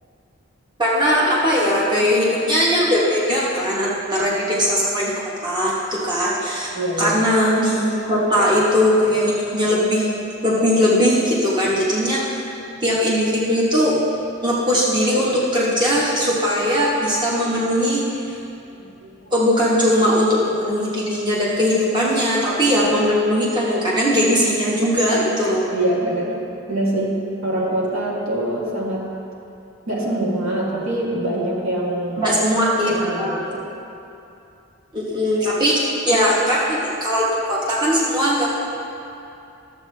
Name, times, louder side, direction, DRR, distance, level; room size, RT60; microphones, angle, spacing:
voice 1, 0.8-10.1 10.4-12.4 12.8-14.0 14.4-18.1 19.3-25.6 32.2-33.5 34.9-38.5, equal, 20° right, -6 dB, 1.2 m, -19 dB
voice 2, 6.8-7.2 18.7-19.3 25.7-26.3 26.7-29.0 29.9-32.3 32.9-33.7, right 1 dB, 75° right, -5 dB, 1.8 m, -24 dB
12.5 x 7.6 x 3.3 m, 2.7 s
head